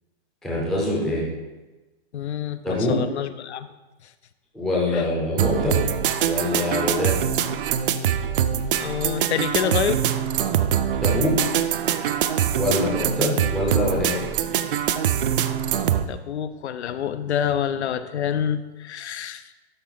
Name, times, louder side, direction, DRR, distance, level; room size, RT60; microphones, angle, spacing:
voice 1, 0.4-1.2 2.6-2.9 4.5-5.8 6.2-7.2 11.0-11.3 12.5-14.2, left 1 dB, ahead, -5 dB, 0.4 m, -24 dB
voice 2, 2.1-3.7 4.9-5.0 8.8-10.0 16.1-19.4, left 9 dB, 90° left, 12 dB, 0.7 m, -27 dB
sound 1, 5.4-16.0, right 9 dB, 55° right, 0.5 m, -23 dB
12.0 x 4.2 x 3.9 m, 1.1 s
hypercardioid pair, 170°, 33 cm